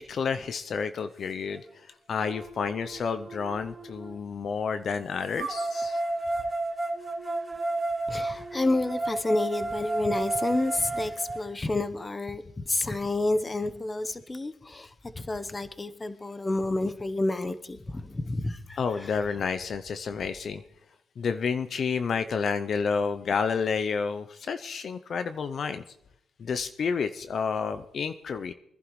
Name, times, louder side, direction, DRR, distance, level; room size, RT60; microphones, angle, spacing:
voice 1, 0.0-6.0 18.8-20.6 21.2-25.8 26.4-28.5, left 5 dB, 50° left, 10 dB, 0.5 m, -30 dB
sound 1, 1.5-1.6 2.2-4.1 5.4-11.4, right 2 dB, 25° right, 3.1 m, -32 dB
voice 2, 8.1-14.9 15.2-19.1, left 2 dB, 20° left, 12 dB, 0.8 m, -29 dB
24.0 x 11.0 x 3.1 m, 0.77 s
cardioid pair, 90°, 0 cm